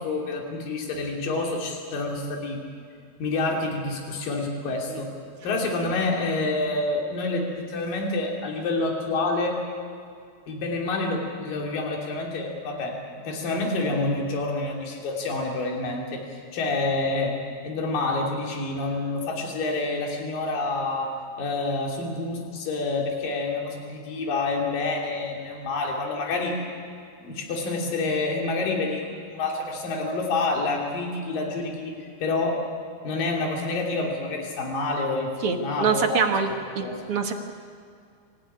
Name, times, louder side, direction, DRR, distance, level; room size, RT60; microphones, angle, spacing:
voice 1, 0.0-2.6 3.2-5.1 5.4-9.6 10.5-13.0 13.2-16.2 16.5-17.4 17.6-26.6 27.2-32.6 33.0-35.3 35.6-36.2 36.5-37.0, left 3 dB, 65° left, 1 dB, 4.7 m, -28 dB
voice 2, 35.4-36.5 36.8-37.3, right 6 dB, 55° right, 4 dB, 1.7 m, -24 dB
26.5 x 15.0 x 9.8 m, 2.3 s
omnidirectional pair, 4.3 m